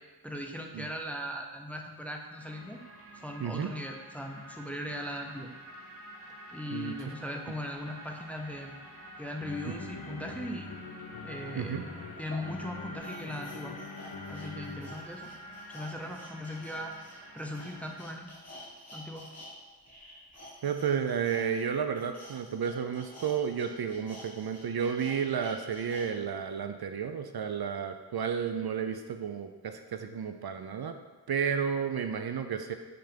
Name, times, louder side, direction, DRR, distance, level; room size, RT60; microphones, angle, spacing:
voice 1, 0.2-2.8 3.1-5.5 6.5-8.7 9.2-10.7 11.2-11.8 12.2-13.7 14.3-15.3 15.7-17.0 17.3-18.3 18.9-19.3, equal, 5° left, 2 dB, 0.6 m, -39 dB
sound 1, 2.4-18.0, right 1 dB, 30° right, 0.9 m, -49 dB
voice 2, 3.4-3.7 6.7-6.9 11.6-11.8 20.6-30.9 31.3-32.7, right 7 dB, 60° right, 7 dB, 0.5 m, -32 dB
sound 2, 8.8-15.3, left 4 dB, 60° left, 0.7 m, -44 dB
sound 3, 11.4-11.5 12.2-19.5 19.8-26.1 26.5-26.6, equal, 35° left, 1.6 m, -50 dB
5.8 x 3.4 x 5.1 m, 1.3 s
wide cardioid pair, 75°, 43 cm